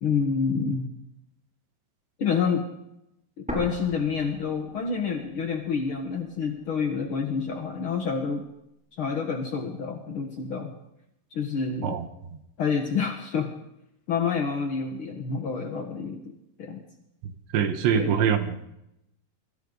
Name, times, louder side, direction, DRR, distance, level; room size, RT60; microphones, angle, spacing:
voice 1, 0.0-0.9 2.2-2.7 3.4-8.4 8.9-10.7 11.3-11.9 12.6-13.5 14.1-16.2 16.6-16.8 17.9-18.2, left 5 dB, 65° left, 3 dB, 1.3 m, -28 dB
sound 1, 3.5-5.4 5.7-5.8 6.5-7.5, equal, ahead, 7.5 m, -38 dB
voice 2, 17.2-18.6, right 8 dB, 90° right, 7 dB, 3.9 m, -24 dB
29.0 x 24.0 x 4.1 m, 0.86 s
omnidirectional pair, 4.9 m